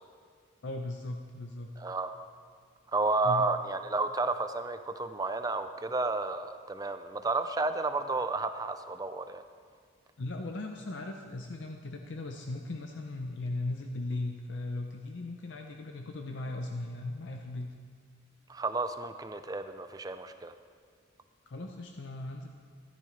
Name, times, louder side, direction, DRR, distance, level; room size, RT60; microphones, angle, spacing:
voice 1, 0.6-1.7 3.2-3.4 10.2-17.7 21.4-22.5, left 2 dB, 60° left, 3 dB, 0.6 m, -38 dB
voice 2, 1.8-2.2 2.9-9.4 18.5-20.5, right 3 dB, 20° right, 9 dB, 0.4 m, -31 dB
14.0 x 12.0 x 3.2 m, 2.1 s
head